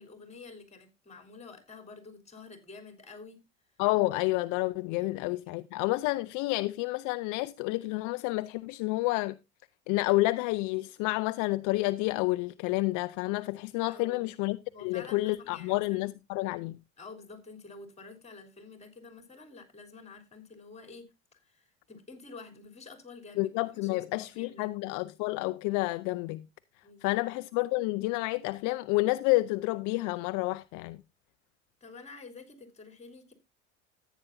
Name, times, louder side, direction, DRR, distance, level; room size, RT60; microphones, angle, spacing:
voice 1, 0.0-3.4 5.0-5.1 5.4-5.6 13.9-14.3 14.7-16.1 17.0-21.0 21.3-24.7 26.8-27.2 31.8-33.3, left 4 dB, 20° left, 3.4 m, -49 dB
voice 2, 3.8-9.4 9.9-16.8 23.4-26.4 27.0-31.0, left 20 dB, 55° left, 0.5 m, -29 dB
14.0 x 9.1 x 2.7 m
hypercardioid pair, 85°, 36 cm